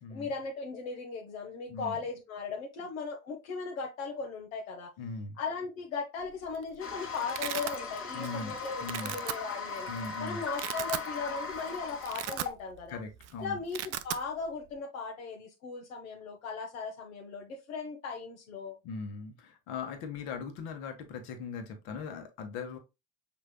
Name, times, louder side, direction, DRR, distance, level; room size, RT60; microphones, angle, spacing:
voice 1, 0.1-4.9 5.4-9.9 10.2-13.0 13.4-18.8, left 4 dB, 85° left, 1.1 m, -38 dB
voice 2, 5.0-5.4 8.1-9.2 9.9-10.4 12.9-13.6 18.8-22.8, left 4 dB, 65° left, 1.4 m, -40 dB
Domestic sounds home sounds, 6.3-6.6 6.9-7.8 8.2-8.5 8.8-9.3 10.0-10.1 10.4-11.1 11.5-11.6 11.9-12.9 13.1-13.3 13.6-14.2, right 12 dB, 40° right, 0.5 m, -36 dB
Toilet flush, 6.8-12.5, left 4 dB, 35° left, 1.4 m, -39 dB
5.5 x 3.9 x 2.2 m
hypercardioid pair, 75°, 40 cm